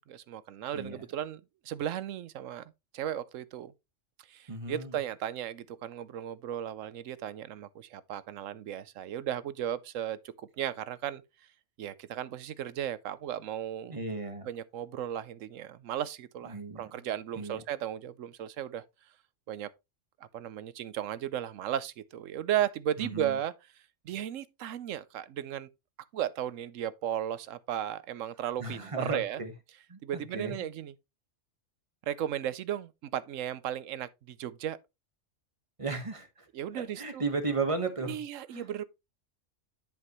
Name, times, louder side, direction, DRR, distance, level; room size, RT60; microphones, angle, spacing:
voice 1, 0.0-3.7 4.3-10.2 10.6-11.2 11.8-14.0 14.5-18.8 19.5-19.7 20.3-23.5 24.0-25.7 26.1-29.4 30.0-30.9 32.1-34.8 36.5-37.2 38.1-38.8, right 10 dB, 90° right, 1.0 m, -35 dB
voice 2, 0.7-1.0 4.5-5.0 13.9-14.5 16.4-16.8 17.4-17.6 23.0-23.4 28.6-29.5 29.9-30.7 35.8-36.5 36.8-38.2 38.5-38.7, right 3 dB, 25° right, 1.4 m, -35 dB
10.5 x 5.4 x 3.1 m
omnidirectional pair, 1.3 m